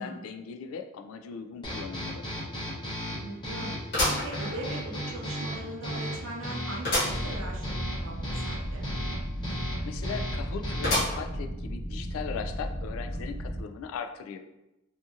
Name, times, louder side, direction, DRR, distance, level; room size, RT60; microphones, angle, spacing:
voice 1, 0.0-2.2 9.8-14.4, left 6 dB, 85° left, 8 dB, 0.3 m, -38 dB
sound 1, 1.6-11.2, equal, 20° left, 0.8 m, -36 dB
sound 2, 1.7-1.8 2.2-2.3 3.9-5.0 5.5-5.6 6.8-7.3 7.7-7.8 8.0-8.1 10.8-11.5 12.0-12.1 13.1-13.2, left 1 dB, 50° left, 1.1 m, -29 dB
voice 2, 3.1-3.8 4.1-8.9, right 1 dB, 80° right, -1 dB, 0.6 m, -40 dB
sound 3, 7.1-13.6, equal, 25° right, 0.4 m, -35 dB
2.7 x 2.5 x 2.4 m, 0.93 s
head